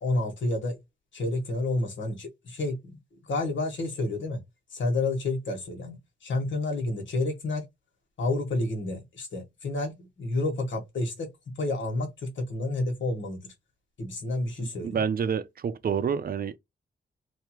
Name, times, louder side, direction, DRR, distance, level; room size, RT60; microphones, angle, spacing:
voice 1, 0.0-0.8 1.1-3.0 3.3-4.4 4.7-7.6 8.2-11.3 11.6-13.5 14.0-15.0, left 2 dB, 80° left, 1.5 m, -30 dB
voice 2, 14.6-16.6, right 7 dB, 50° right, 0.5 m, -28 dB
3.2 x 2.7 x 3.0 m
wide cardioid pair, 100°, 19 cm